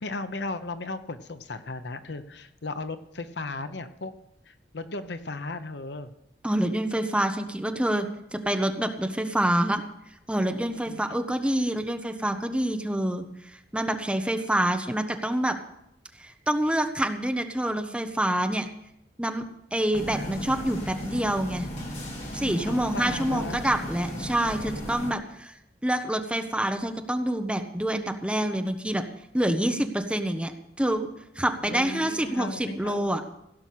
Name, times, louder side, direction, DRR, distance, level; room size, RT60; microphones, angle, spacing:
voice 1, 0.0-4.1 4.5-6.1 10.9-11.2 19.9-20.6 22.7-23.6 31.7-33.2, left 3 dB, 70° left, 10 dB, 0.9 m, -36 dB
voice 2, 6.4-8.1 8.3-9.8 10.3-13.2 13.7-15.5 16.2-18.6 19.2-19.4 19.7-21.7 22.3-25.5 25.8-29.0 29.3-30.5 30.8-31.1 31.4-33.2, right 1 dB, 5° right, 6 dB, 0.9 m, -27 dB
sound 1, 19.9-25.1, equal, 40° left, 2.9 m, -35 dB
16.5 x 6.0 x 8.4 m, 0.81 s
head